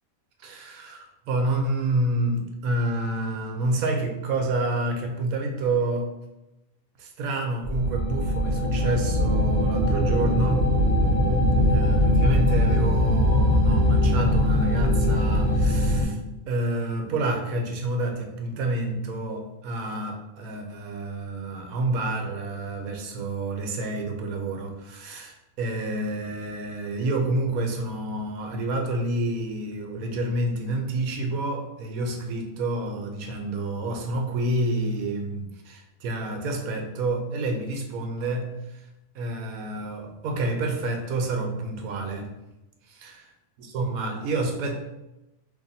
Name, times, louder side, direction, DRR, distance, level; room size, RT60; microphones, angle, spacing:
voice 1, 0.4-6.1 7.0-10.7 11.7-16.2 16.5-38.9 39.1-42.3 42.8-43.2 43.6-44.8, right 2 dB, 85° right, 3 dB, 1.1 m, -29 dB
sound 1, 7.6-16.0, left 1 dB, 25° left, 1.3 m, -21 dB
2.9 x 2.6 x 3.9 m, 0.95 s
omnidirectional pair, 1.5 m